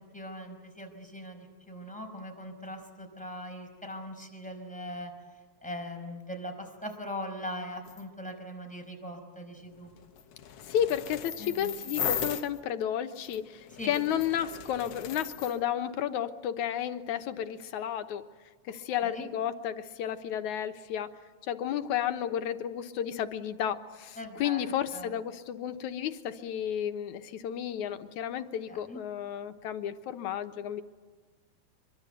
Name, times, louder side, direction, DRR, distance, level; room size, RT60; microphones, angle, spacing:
voice 1, 0.1-5.1 5.6-9.9 11.4-11.7 13.8-13.9 19.0-19.3 24.2-25.1 28.7-29.0, left 1 dB, ahead, 2 dB, 4.8 m, -41 dB
sound 1, 7.9-8.0 9.7-12.6 13.2-15.6, left 8 dB, 60° left, 1.9 m, -37 dB
voice 2, 10.6-18.2 18.7-21.2 21.4-30.8, left 10 dB, 85° left, 8 dB, 2.5 m, -32 dB
25.5 x 23.5 x 8.1 m, 1.5 s
omnidirectional pair, 3.4 m